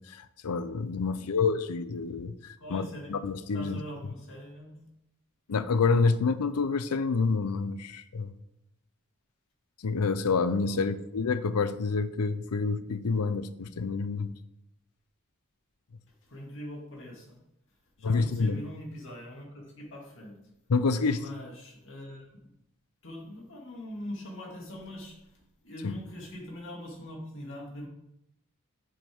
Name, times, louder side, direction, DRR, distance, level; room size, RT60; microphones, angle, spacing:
voice 1, 0.0-3.8 5.5-8.3 9.8-14.4 18.0-18.6 20.7-21.2 25.8-25.9, left 4 dB, 85° left, 13 dB, 0.6 m, -28 dB
voice 2, 2.6-3.2 3.5-4.8 10.7-11.0 16.2-17.4 18.0-20.4 21.1-22.5 23.0-27.9, equal, 60° left, -1 dB, 2.3 m, -42 dB
7.8 x 7.7 x 3.5 m, 0.82 s
head